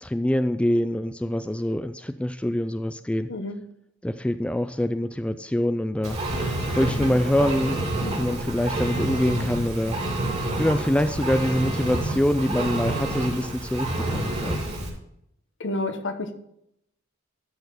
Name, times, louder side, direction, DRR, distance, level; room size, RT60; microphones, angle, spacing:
voice 1, 0.0-3.3 4.0-6.4 6.7-10.0 10.6-14.6, left 1 dB, 5° left, 11 dB, 0.3 m, -25 dB
Engine, 6.0-14.9, right 1 dB, 35° right, 2.4 m, -28 dB
voice 2, 15.6-16.3, left 2 dB, 65° left, 9 dB, 1.1 m, -30 dB
12.0 x 4.3 x 6.8 m, 0.76 s
head